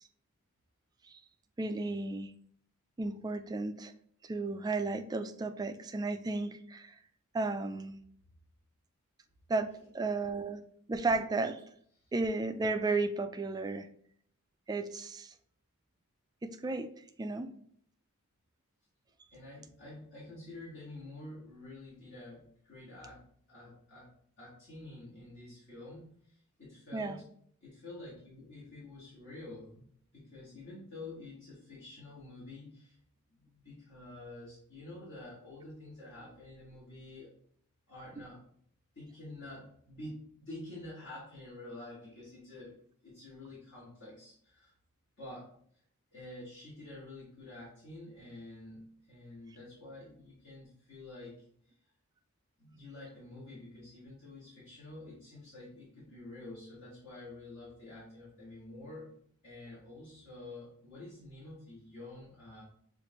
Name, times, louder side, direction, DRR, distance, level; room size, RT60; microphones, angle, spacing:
voice 1, 1.6-2.3 3.0-3.9 4.2-6.9 7.3-8.0 9.5-9.7 9.9-10.6 10.9-11.6 12.1-13.9 14.7-15.3 16.4-16.9 17.2-17.5 26.9-27.2, right 3 dB, 15° right, 8 dB, 0.3 m, -33 dB
voice 2, 19.3-27.2 27.6-29.8 30.1-33.0 33.3-37.3 37.9-38.4 38.9-42.8 43.0-44.7 45.2-45.5 46.1-48.8 49.1-51.7 52.6-59.1 59.4-62.6, left 2 dB, 55° left, -9 dB, 1.8 m, -48 dB
6.5 x 2.5 x 3.0 m, 0.63 s
head